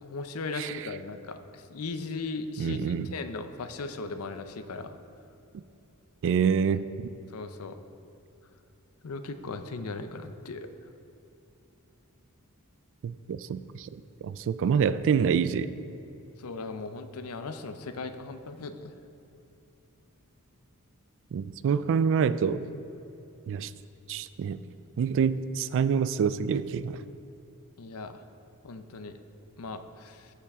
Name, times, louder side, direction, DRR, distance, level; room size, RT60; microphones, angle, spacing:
voice 1, 0.0-5.0 7.3-7.8 9.0-10.7 16.4-18.9 27.8-28.2 28.6-29.2 29.6-30.3, left 3 dB, 70° left, 9 dB, 0.6 m, -37 dB
voice 2, 0.5-0.9 2.6-3.1 6.2-6.8 13.0-15.7 21.3-22.6 23.5-23.7 24.1-24.6 25.0-27.0, right 6 dB, 60° right, 14 dB, 0.3 m, -27 dB
14.5 x 5.7 x 3.6 m, 2.9 s
head